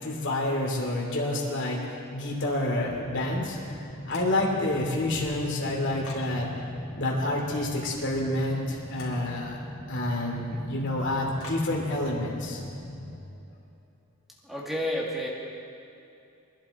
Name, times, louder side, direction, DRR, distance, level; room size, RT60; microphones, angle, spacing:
voice 1, 0.0-3.8 4.1-6.6 7.0-9.6 9.9-12.6, left 1 dB, 55° left, -2 dB, 2.8 m, -28 dB
sound 1, 2.8-13.2, left 1 dB, 15° left, 4.2 m, -39 dB
sound 2, 4.1-4.7 5.0-6.3 8.9-9.2 11.4-11.7, left 3 dB, 80° left, 3.2 m, -45 dB
voice 2, 14.4-15.3, equal, ahead, -3 dB, 2.1 m, -30 dB
23.5 x 11.0 x 4.3 m, 2.7 s
head